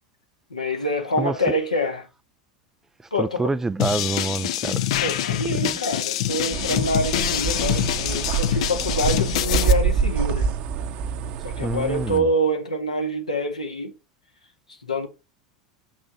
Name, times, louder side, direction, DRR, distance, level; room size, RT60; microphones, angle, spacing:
voice 1, 0.5-2.1 3.1-3.5 5.0-10.6 11.4-13.9 14.8-15.1, equal, 85° left, 1.7 m, -26 dB
voice 2, 1.2-1.6 3.2-4.9 5.4-5.7 11.6-12.3, right 3 dB, 10° right, 0.5 m, -27 dB
sound 1, 3.8-9.7, left 11 dB, 60° left, 0.7 m, -25 dB
sound 2, 6.5-12.2, right 6 dB, 45° right, 1.1 m, -26 dB
6.2 x 6.0 x 6.7 m
figure-of-eight pair, 85°, 4 cm